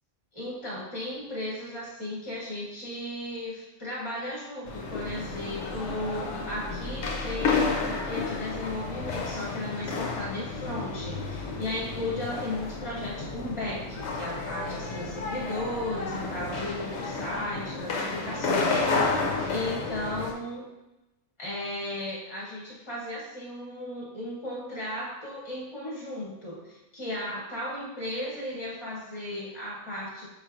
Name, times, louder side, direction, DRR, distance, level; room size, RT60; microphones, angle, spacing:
voice 1, 0.3-19.2 19.5-20.7 21.4-30.3, left 1 dB, 25° left, -5 dB, 0.8 m, -35 dB
sound 1, 4.7-20.3, left 3 dB, 70° left, 0.9 m, -31 dB
5.2 x 3.1 x 2.5 m, 1.0 s
omnidirectional pair, 1.3 m